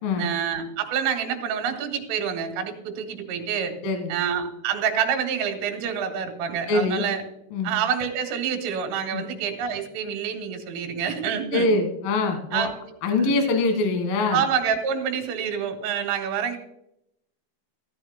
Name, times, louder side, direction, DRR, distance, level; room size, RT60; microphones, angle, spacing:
voice 1, 0.2-3.7 4.1-7.2 7.6-11.7 12.5-12.7 13.2-13.4 14.3-16.6, right 8 dB, 85° right, 4 dB, 4.5 m, -27 dB
voice 2, 3.8-4.1 6.7-7.0 7.5-7.7 9.1-9.2 11.5-12.7 13.0-14.4, left 3 dB, 60° left, 6 dB, 2.8 m, -23 dB
17.0 x 12.5 x 2.2 m, 0.80 s
omnidirectional pair, 5.6 m